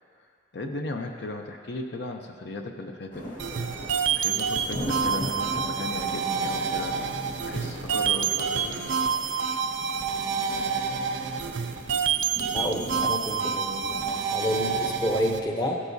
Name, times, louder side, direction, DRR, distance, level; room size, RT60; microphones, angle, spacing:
voice 1, 0.5-3.9 4.2-8.9, left 2 dB, 65° left, 3 dB, 0.7 m, -36 dB
sound 1, 3.1-15.5, equal, 45° left, 1.8 m, -40 dB
sound 2, 3.4-15.4, right 6 dB, 85° right, 0.5 m, -28 dB
voice 2, 12.5-15.8, equal, 20° left, 1 dB, 0.8 m, -29 dB
14.0 x 9.7 x 2.7 m, 2.3 s
head